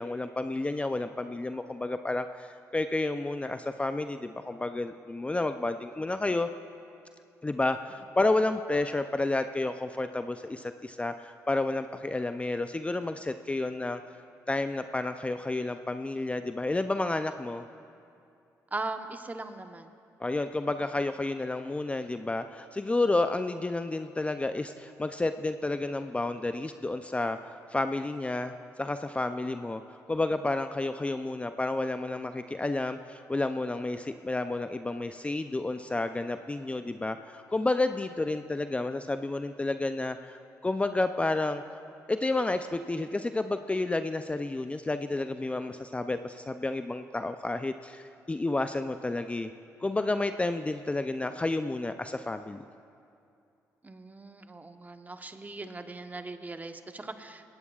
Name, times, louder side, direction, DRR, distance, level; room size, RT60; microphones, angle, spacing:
voice 1, 0.0-6.5 7.4-14.0 14.5-17.6 20.2-27.4 27.7-41.6 42.1-49.5 49.8-52.6, left 2 dB, 20° left, 9 dB, 0.5 m, -31 dB
voice 2, 18.7-19.9 53.8-57.4, right 3 dB, 25° right, 7 dB, 1.0 m, -39 dB
20.0 x 17.0 x 2.4 m, 2.5 s
supercardioid pair, 60°, 7 cm